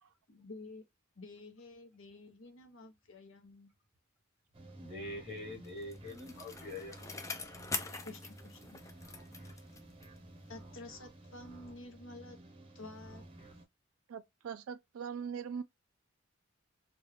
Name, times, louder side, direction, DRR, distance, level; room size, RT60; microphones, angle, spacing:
voice 1, 0.3-0.8 1.2-3.7 8.0-8.8 10.5-12.4 12.7-13.2, left 2 dB, 65° left, 0.9 m, -50 dB
sound 1, 4.5-13.6, right 1 dB, 25° right, 0.7 m, -53 dB
voice 2, 4.8-7.1 7.9-8.0, left 1 dB, ahead, 1.0 m, -44 dB
Bicycle, 5.4-10.3 10.6-10.7, left 4 dB, 15° left, 0.3 m, -44 dB
voice 3, 14.1-15.6, right 7 dB, 75° right, 0.4 m, -41 dB
3.1 x 2.3 x 3.1 m
head